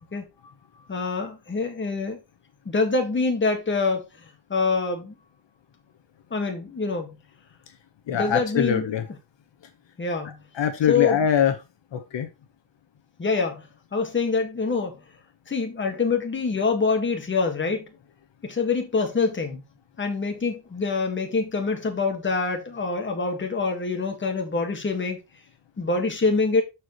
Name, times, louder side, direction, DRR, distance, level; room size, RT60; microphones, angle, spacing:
voice 1, 0.9-2.2 2.7-4.0 4.5-5.2 6.3-7.2 8.1-8.9 10.0-10.4 10.9-11.2 13.2-15.0 15.5-17.9 18.4-19.6 20.0-25.2 25.8-26.6, left 4 dB, 25° left, 1.8 m, -25 dB
voice 2, 8.1-9.0 10.6-11.5 11.9-12.3, left 8 dB, 65° left, 1.3 m, -23 dB
12.5 x 4.7 x 3.1 m
wide cardioid pair, 170°, 47 cm